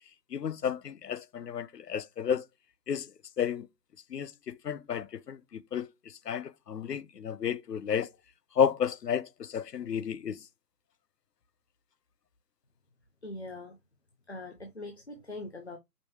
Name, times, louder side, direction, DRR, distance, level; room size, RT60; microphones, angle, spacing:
voice 1, 0.3-2.5 2.9-3.1 3.4-3.7 4.1-5.9 6.3-8.1 8.6-10.4, left 8 dB, 90° left, 0.7 m, -31 dB
voice 2, 13.2-13.8 14.3-15.8, left 2 dB, 45° left, 0.7 m, -42 dB
5.2 x 3.2 x 2.8 m
figure-of-eight pair, 175°, 47 cm